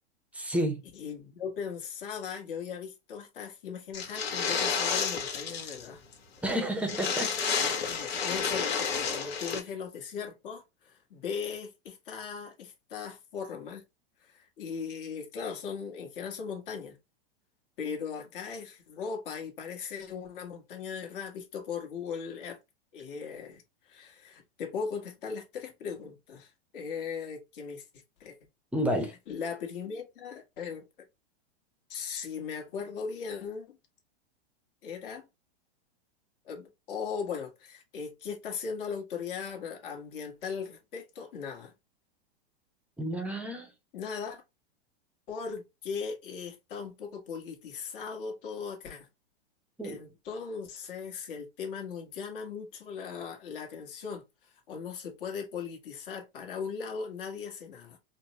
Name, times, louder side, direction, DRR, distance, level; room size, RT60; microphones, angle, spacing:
voice 1, 0.3-0.8 6.4-7.3 28.7-29.1 43.0-43.7 49.8-50.0, equal, 5° right, 0.6 m, -30 dB
voice 2, 0.9-6.0 7.6-13.8 14.2-17.0 17.8-22.6 22.9-27.8 28.2-28.4 29.3-31.1 31.9-33.8 34.8-35.3 36.4-41.7 43.9-44.4 45.3-49.1 49.8-54.2 54.7-58.0, left 6 dB, 60° left, 1.4 m, -38 dB
sound 1, 3.9-5.9 6.1-6.2 6.5-6.6 6.8-9.6, left 6 dB, 80° left, 1.4 m, -30 dB
4.4 x 2.1 x 2.7 m
hypercardioid pair, 135°, 31 cm